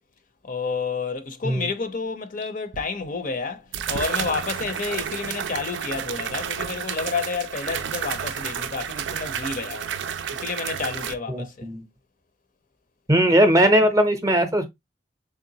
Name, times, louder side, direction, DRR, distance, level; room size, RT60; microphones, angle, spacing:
voice 1, 0.4-9.9 10.3-11.7, left 4 dB, 50° left, 0.6 m, -30 dB
sound 1, 2.7-2.8 3.7-11.1, right 8 dB, 80° right, 0.4 m, -31 dB
voice 2, 11.3-11.9 13.1-14.7, right 1 dB, 20° right, 0.7 m, -19 dB
3.7 x 3.3 x 2.7 m
head